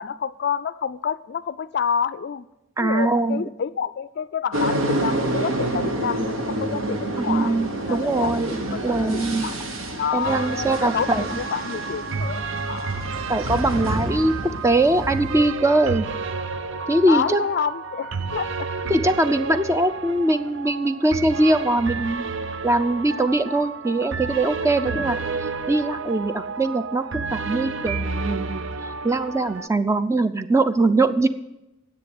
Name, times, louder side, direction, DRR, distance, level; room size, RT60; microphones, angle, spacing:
voice 1, 0.0-2.5 2.8-7.5 7.9-13.3 17.1-18.7 24.8-25.1, left 7 dB, 55° left, 16 dB, 0.4 m, -29 dB
voice 2, 2.8-3.4 7.2-8.6 8.8-9.5 10.1-11.3 13.3-16.1 16.9-17.4 18.9-22.2 22.6-25.2 25.7-28.6 29.0-31.3, right 2 dB, 15° right, 10 dB, 0.5 m, -21 dB
sound 1, 4.5-15.5, right 1 dB, 85° right, 1.4 m, -28 dB
sound 2, 10.2-29.7, right 4 dB, 65° right, 0.6 m, -31 dB
10.0 x 8.0 x 7.7 m, 0.92 s
head